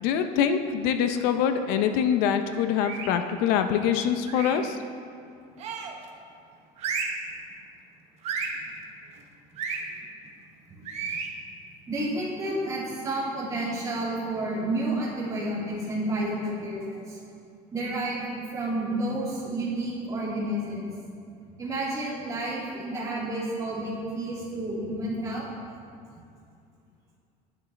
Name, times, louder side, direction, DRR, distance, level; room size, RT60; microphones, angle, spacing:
voice 1, 0.0-4.8, left 8 dB, 70° left, 8 dB, 0.6 m, -24 dB
sound 1, 2.8-3.2 4.3-4.7 5.6-6.1 6.8-7.3 8.2-8.6 9.6-9.8 10.9-11.3, right 5 dB, 40° right, 1.0 m, -32 dB
voice 2, 11.9-17.2 17.7-18.3 18.5-20.8 21.6-25.4, right 1 dB, 20° right, -6 dB, 2.5 m, -30 dB
11.0 x 10.5 x 3.3 m, 2.4 s
cardioid pair, 165°, 16 cm